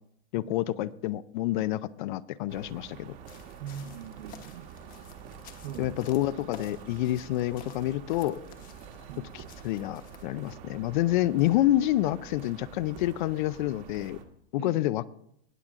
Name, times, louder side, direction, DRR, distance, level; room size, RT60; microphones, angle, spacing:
voice 1, 0.3-3.2 5.8-8.4 9.3-14.2 14.5-15.1, left 15 dB, 50° left, 17 dB, 0.5 m, -28 dB
sound 1, 2.5-14.2, right 8 dB, 40° right, 1.4 m, -47 dB
sound 2, 3.3-10.3, left 7 dB, 25° left, 1.1 m, -52 dB
voice 2, 3.6-4.7 5.6-6.0 9.1-9.2 14.6-14.8, right 9 dB, 65° right, 12 dB, 1.0 m, -41 dB
19.0 x 7.4 x 3.7 m, 0.71 s
supercardioid pair, 150°, 33 cm